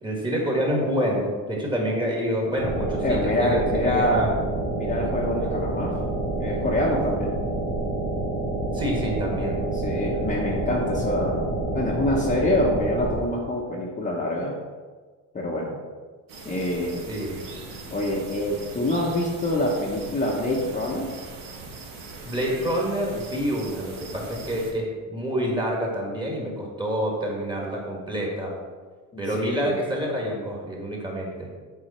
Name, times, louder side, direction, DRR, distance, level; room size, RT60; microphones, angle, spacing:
voice 1, 0.0-4.3 8.7-9.6 17.1-17.4 22.2-28.5 29.2-31.5, equal, 15° right, -2 dB, 1.7 m, -27 dB
sound 1, 2.6-13.2, right 2 dB, 85° right, 2.3 m, -28 dB
voice 2, 3.0-4.3 4.8-6.0 6.3-7.4 9.7-11.5 11.7-14.5 15.3-15.8 16.4-17.0 17.9-21.1 29.1-29.8, left 1 dB, 20° left, -3 dB, 0.9 m, -26 dB
sound 2, 16.3-24.7, right 3 dB, 65° right, 1.7 m, -41 dB
8.1 x 4.7 x 4.3 m, 1.5 s
cardioid pair, 145°, 35 cm